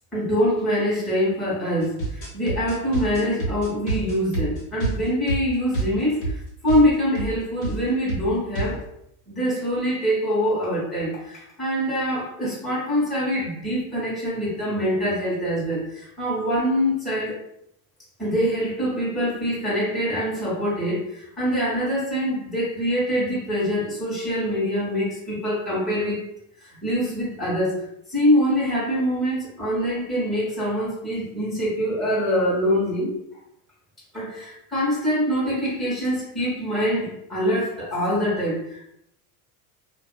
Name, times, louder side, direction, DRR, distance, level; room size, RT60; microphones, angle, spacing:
voice 1, 0.1-8.8 9.3-17.4 18.2-26.2 26.6-33.1 34.1-38.9, equal, ahead, -8 dB, 1.0 m, -24 dB
sound 1, 1.8-6.4 6.7-6.9 7.1-7.3 7.6-7.8 8.1-8.8, right 3 dB, 75° left, 1.3 m, -28 dB
2.4 x 2.4 x 2.2 m, 0.76 s
supercardioid pair, 105°, 44 cm